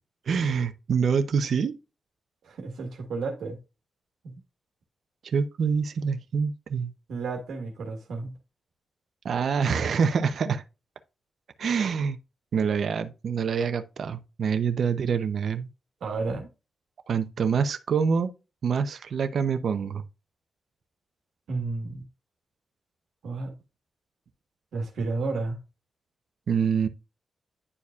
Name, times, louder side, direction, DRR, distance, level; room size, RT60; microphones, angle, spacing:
voice 1, 0.3-1.8 5.2-6.9 9.2-10.6 11.6-12.2 12.5-15.7 17.1-18.3 18.6-20.0 26.5-26.9, right 6 dB, 65° right, 0.6 m, -26 dB
voice 2, 2.4-3.6 4.2-4.3 7.1-8.3 16.0-16.5 21.5-22.0 23.2-23.5 24.7-25.6, right 3 dB, 85° right, 1.4 m, -32 dB
9.8 x 4.6 x 2.4 m
cardioid pair, 95°, 0 cm